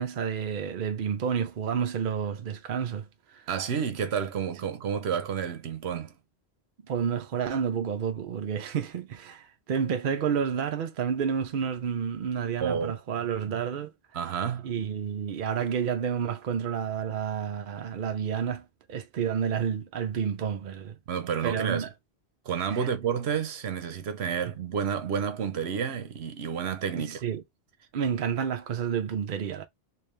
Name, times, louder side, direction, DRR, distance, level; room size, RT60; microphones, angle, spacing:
voice 1, 0.0-3.1 3.3-3.4 6.9-13.9 14.6-21.0 21.4-21.9 22.7-22.9 27.0-27.4 27.9-29.6, right 7 dB, 60° right, 0.7 m, -30 dB
voice 2, 3.5-6.1 12.6-13.0 14.1-14.7 21.1-21.9 22.5-27.2, right 7 dB, 80° right, 1.0 m, -30 dB
3.4 x 3.0 x 3.2 m
omnidirectional pair, 1.1 m